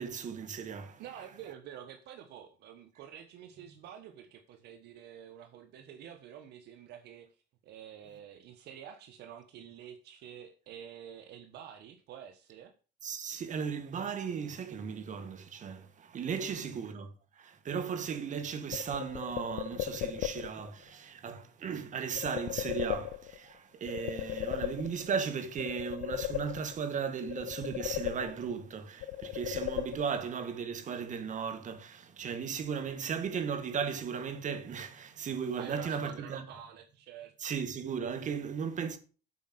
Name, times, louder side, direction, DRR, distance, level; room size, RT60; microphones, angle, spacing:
voice 1, 0.0-1.0 13.0-36.5 37.4-39.0, right 6 dB, 45° right, 1.9 m, -36 dB
voice 2, 1.0-7.3 7.6-12.7 16.4-16.8 35.6-37.3, right 9 dB, 80° right, 1.3 m, -48 dB
sound 1, 18.7-20.7 22.2-23.5 23.9-25.2 25.6-26.9 27.3-28.7 29.0-30.4, left 13 dB, 85° left, 0.6 m, -37 dB
8.3 x 5.3 x 7.8 m
cardioid pair, 110°, 17 cm